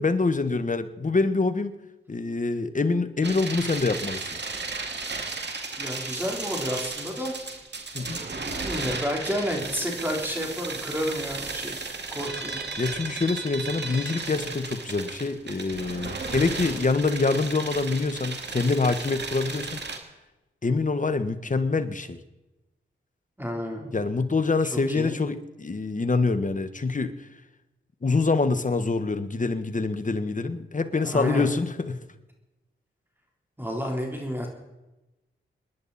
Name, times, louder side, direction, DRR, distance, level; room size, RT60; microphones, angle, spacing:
voice 1, 0.0-1.7 2.1-4.3 7.9-8.2 12.8-19.8 20.6-22.2 23.9-27.1 28.0-32.0, left 3 dB, 40° left, 10 dB, 1.5 m, -25 dB
sound 1, 3.2-20.0, right 3 dB, 55° right, 2.3 m, -34 dB
voice 2, 5.8-7.3 8.4-11.7 12.1-12.6 23.4-23.9 24.7-25.1 30.9-31.5 33.6-34.5, equal, 10° right, 0 dB, 3.9 m, -30 dB
27.5 x 10.5 x 4.3 m, 1.0 s
cardioid pair, 50°, 21 cm